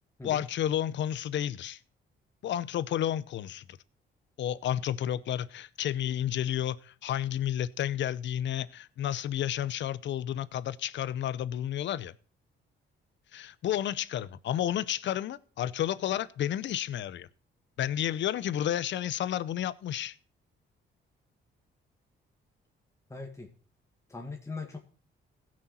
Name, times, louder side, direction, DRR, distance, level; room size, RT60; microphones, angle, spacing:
voice 1, 0.2-1.8 2.4-3.8 4.4-12.1 13.3-17.3 17.8-20.1, left 11 dB, 65° left, 0.7 m, -31 dB
voice 2, 23.1-23.5 24.1-24.8, left 3 dB, 15° left, 1.8 m, -40 dB
16.5 x 6.4 x 4.2 m
cardioid pair, 90°, 20 cm